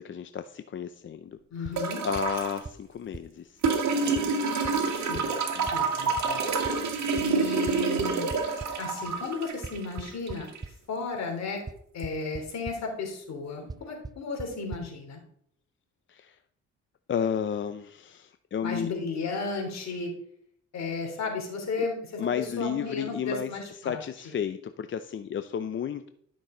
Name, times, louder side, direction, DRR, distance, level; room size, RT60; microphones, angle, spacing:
voice 1, 0.0-3.6 4.0-4.4 5.5-6.0 16.1-16.4 17.1-18.9 22.2-23.5 23.8-26.1, left 8 dB, 40° left, 10 dB, 0.6 m, -33 dB
voice 2, 1.5-2.0 4.9-5.3 5.6-6.4 7.1-8.3 8.8-10.5 10.9-11.6 11.9-15.2 18.6-20.1 20.7-22.3 22.6-24.0, left 4 dB, 60° left, 1 dB, 3.3 m, -34 dB
sound 1, 1.6-1.8 2.2-2.3 2.7-2.8 3.1-3.2 3.6-3.7 4.2-4.3 4.6-4.7 5.1-5.2 5.7-5.8 6.2-6.3 6.6-6.7 7.2-7.3 7.7-8.7 9.6-10.7 11.7-11.8 12.0-12.4 12.7-12.8 13.7-13.8 14.0-14.1 14.4-14.5 14.7-14.8, right 3 dB, 15° right, 0.4 m, -37 dB
sound 2, 1.8-2.6 3.6-10.6 12.0-12.1, right 4 dB, 65° right, 1.9 m, -28 dB
12.0 x 6.3 x 3.9 m, 0.67 s
cardioid pair, 90°, 30 cm